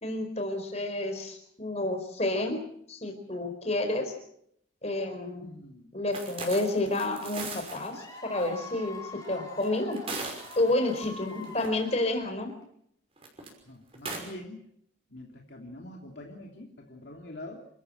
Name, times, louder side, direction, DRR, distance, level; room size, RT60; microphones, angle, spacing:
voice 1, 0.0-2.6 2.9-4.1 4.8-5.5 5.9-10.0 10.5-12.5, left 2 dB, 35° left, 5 dB, 4.6 m, -30 dB
voice 2, 5.4-5.9 10.6-10.8 13.7-14.6 15.1-17.7, left 1 dB, 60° left, 0 dB, 3.0 m, -45 dB
sound 1, 6.1-7.9 8.4-8.5 9.6-11.1 11.4-11.7 13.2-13.5 13.9-14.2, right 3 dB, 30° right, 5.7 m, -38 dB
Cheering / Applause / Crowd, 7.9-12.6, left 2 dB, 15° left, 5.4 m, -45 dB
28.5 x 14.0 x 7.8 m, 0.70 s
head